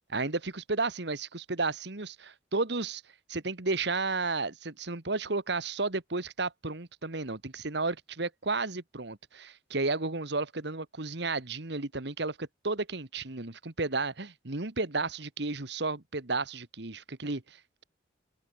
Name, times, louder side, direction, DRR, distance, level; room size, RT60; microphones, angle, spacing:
voice 1, 0.1-3.0 3.3-17.6, right 3 dB, 60° right, 1.7 m, -33 dB
open air
head